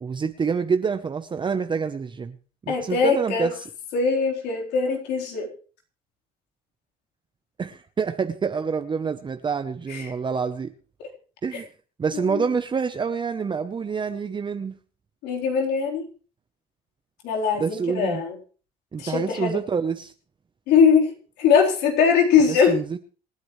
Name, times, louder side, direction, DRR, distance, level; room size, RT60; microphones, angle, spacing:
voice 1, 0.0-2.4 2.7-3.5 7.6-10.7 11.4-11.7 12.0-14.7 17.6-18.2 18.9-20.1 22.7-23.0, right 5 dB, 30° right, 0.8 m, -27 dB
voice 2, 2.7-3.5 3.9-5.5 9.9-10.1 11.0-11.1 11.5-11.6 12.1-12.4 15.2-16.1 17.2-18.4 19.0-19.6 20.7-21.1 21.4-22.8, left 6 dB, 85° left, 4.1 m, -21 dB
27.0 x 9.7 x 3.2 m
cardioid pair, 110°, 17 cm